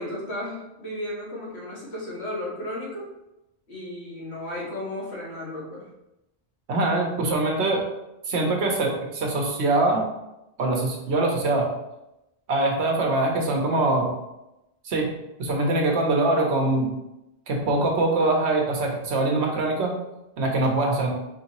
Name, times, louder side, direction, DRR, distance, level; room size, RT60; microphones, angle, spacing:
voice 1, 0.0-3.1 3.7-5.9, left 1 dB, 70° left, -7 dB, 1.7 m, -34 dB
voice 2, 6.7-7.8 8.3-10.0 10.6-11.7 12.5-14.1 14.8-15.1 15.4-16.9 17.5-19.9 20.4-21.1, right 2 dB, 75° right, 1 dB, 1.1 m, -23 dB
4.4 x 2.7 x 2.9 m, 0.91 s
omnidirectional pair, 1.1 m